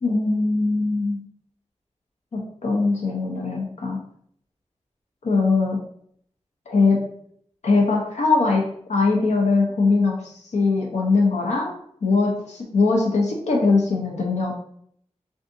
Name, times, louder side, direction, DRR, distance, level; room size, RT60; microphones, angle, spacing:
voice 1, 0.0-1.2 2.3-4.0 5.2-5.8 6.7-7.0 7.6-14.5, left 3 dB, 75° left, -1 dB, 0.6 m, -21 dB
2.6 x 2.4 x 3.5 m, 0.68 s
wide cardioid pair, 85°, 12 cm